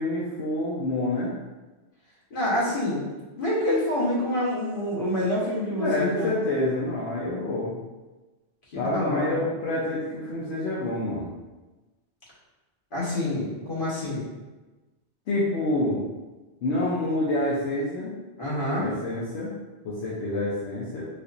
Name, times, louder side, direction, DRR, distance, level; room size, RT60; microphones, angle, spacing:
voice 1, 0.0-1.3 5.8-7.7 8.8-11.3 15.3-16.0 16.6-18.1 18.8-19.5 19.8-21.0, left 1 dB, 75° left, -6 dB, 0.9 m, -27 dB
voice 2, 2.3-3.1 3.4-6.4 8.7-9.4 12.9-14.2 18.4-18.9, left 1 dB, 50° left, -7 dB, 1.3 m, -27 dB
4.1 x 2.5 x 2.5 m, 1.2 s
omnidirectional pair, 1.2 m